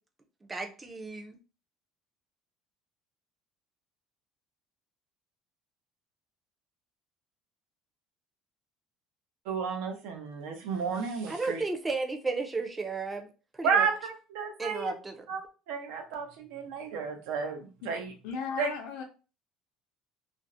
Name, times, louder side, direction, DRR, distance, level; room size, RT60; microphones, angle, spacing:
voice 1, 0.5-1.4 11.3-13.3 13.5-13.9 14.6-15.3, right 3 dB, 15° right, 4 dB, 0.4 m, -33 dB
voice 2, 9.5-11.6 13.6-14.9 15.3-15.4 15.7-18.1 18.6-18.7, right 6 dB, 85° right, 4 dB, 0.6 m, -32 dB
voice 3, 18.2-19.0, left 6 dB, 75° left, 3 dB, 0.6 m, -36 dB
2.5 x 2.0 x 2.6 m, 0.33 s
cardioid pair, 145°, 0 cm